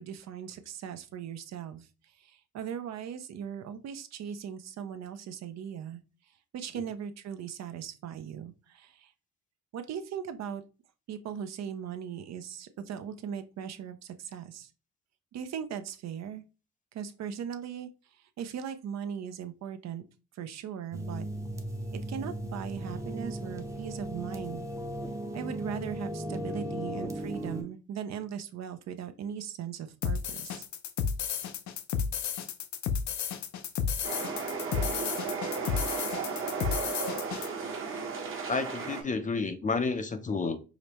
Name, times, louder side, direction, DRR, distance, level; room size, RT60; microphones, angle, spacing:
voice 1, 0.0-1.9 2.2-6.0 6.5-9.1 9.7-10.6 11.1-14.7 15.3-16.4 16.9-20.0 20.3-21.3 22.1-24.7 25.3-30.6, right 8 dB, 60° right, 9 dB, 0.5 m, -39 dB
sound 1, 20.9-27.6, right 1 dB, 10° right, 0.7 m, -36 dB
sound 2, 30.0-37.5, left 7 dB, 70° left, 0.6 m, -32 dB
sound 3, 34.0-39.0, right 5 dB, 45° right, 0.9 m, -34 dB
voice 2, 38.5-40.6, left 4 dB, 25° left, 9 dB, 0.5 m, -30 dB
5.0 x 2.1 x 2.9 m, 0.32 s
cardioid pair, 90°, 30 cm